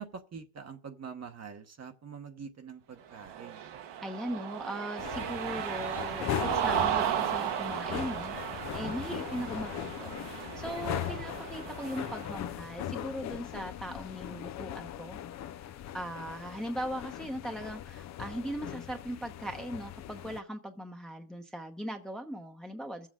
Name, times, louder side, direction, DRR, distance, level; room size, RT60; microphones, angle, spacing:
voice 1, 0.0-3.7, right 6 dB, 30° right, 1.0 m, -45 dB
Cheering, 3.1-12.4, right 10 dB, 55° right, 1.1 m, -35 dB
voice 2, 4.0-15.2 15.9-23.1, equal, ahead, 0.9 m, -39 dB
sound 1, 5.0-20.4, left 11 dB, 35° left, 0.5 m, -39 dB
22.0 x 7.6 x 3.7 m
cardioid pair, 110°, 49 cm